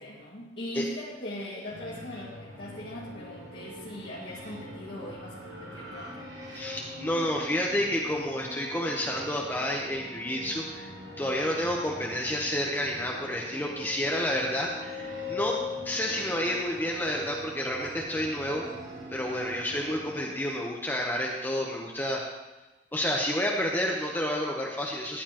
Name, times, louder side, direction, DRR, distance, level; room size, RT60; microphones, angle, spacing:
voice 1, 0.0-6.3, left 1 dB, 65° left, -7 dB, 2.2 m, -40 dB
sound 1, 1.7-20.4, left 1 dB, 80° right, 3.1 m, -42 dB
voice 2, 6.5-10.9 11.2-15.6 15.8-18.6 19.1-22.2 22.9-25.2, left 1 dB, 10° left, -2 dB, 0.9 m, -30 dB
14.5 x 9.8 x 3.0 m, 1.1 s
head